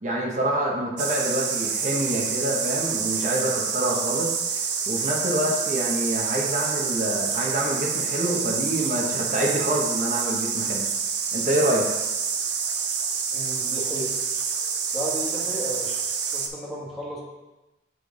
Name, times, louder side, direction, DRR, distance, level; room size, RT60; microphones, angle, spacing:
voice 1, 0.0-4.3 4.9-10.9 11.3-11.9, right 1 dB, 40° right, -2 dB, 1.0 m, -26 dB
sound 1, 1.0-16.5, right 6 dB, 70° right, 0.6 m, -27 dB
voice 2, 13.3-14.1 14.9-16.0 16.3-17.2, equal, ahead, -6 dB, 1.3 m, -33 dB
7.6 x 3.4 x 3.8 m, 1.1 s
head